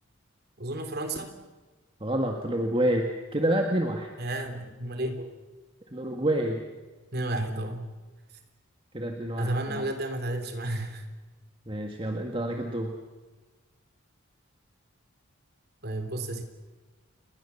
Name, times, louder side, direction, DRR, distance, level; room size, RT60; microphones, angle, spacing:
voice 1, 0.6-1.4 4.2-5.2 7.1-7.9 9.4-11.1 15.8-16.4, right 1 dB, 50° right, 6 dB, 3.5 m, -32 dB
voice 2, 2.0-4.1 5.9-6.6 8.9-9.9 11.7-12.9, right 1 dB, 25° right, 3 dB, 1.9 m, -28 dB
30.0 x 21.0 x 7.2 m, 1.2 s
head